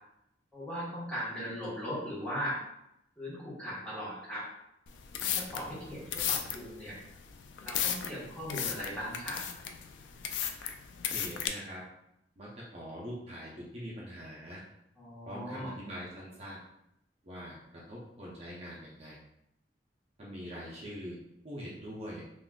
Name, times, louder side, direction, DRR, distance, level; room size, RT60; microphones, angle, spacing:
voice 1, 0.5-2.6 3.2-4.5 5.2-7.0 7.6-9.4 15.0-15.7, equal, 5° left, -9 dB, 1.1 m, -38 dB
sound 1, 4.9-11.5, left 8 dB, 85° left, 0.3 m, -35 dB
voice 2, 11.0-11.8 12.4-14.6 15.2-16.6 17.2-17.6 17.9-19.2 20.2-21.2 21.4-22.2, equal, 35° right, -5 dB, 0.5 m, -43 dB
3.7 x 2.4 x 2.2 m, 0.80 s
head